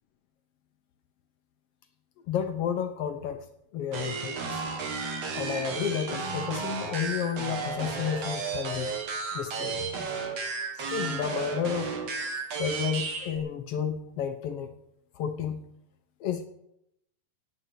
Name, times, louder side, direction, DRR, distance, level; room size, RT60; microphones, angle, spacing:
voice 1, 2.3-3.4 3.7-4.4 5.3-8.9 9.3-9.9 10.9-12.1 12.6-14.7 15.1-15.6 16.2-16.5, left 8 dB, 85° left, 7 dB, 1.3 m, -31 dB
sound 1, 3.9-13.4, right 4 dB, 50° right, 3.0 m, -33 dB
16.0 x 9.4 x 7.6 m, 0.79 s
omnidirectional pair, 4.0 m